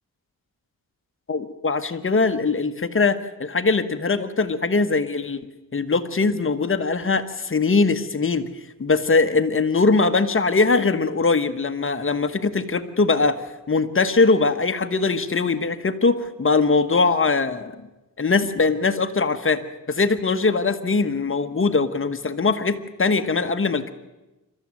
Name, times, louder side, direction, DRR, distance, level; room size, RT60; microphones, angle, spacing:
voice 1, 1.3-5.4 5.7-8.5 8.8-17.7 18.2-19.6 19.9-23.9, left 4 dB, 35° left, 9 dB, 1.3 m, -21 dB
27.0 x 13.5 x 7.7 m, 1.1 s
cardioid pair, 90°, 35 cm